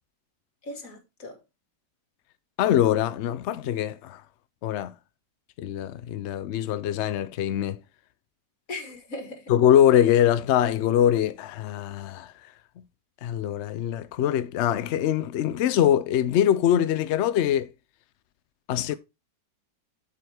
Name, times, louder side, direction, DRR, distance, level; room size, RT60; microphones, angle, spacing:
voice 1, 0.6-1.4 8.7-9.5 18.9-19.0, left 2 dB, 55° left, 2.2 m, -38 dB
voice 2, 2.6-4.2 4.6-4.9 5.6-7.8 9.5-12.3 13.2-17.7 18.7-18.9, left 10 dB, 75° left, 0.6 m, -23 dB
7.8 x 6.9 x 3.4 m
omnidirectional pair, 1.8 m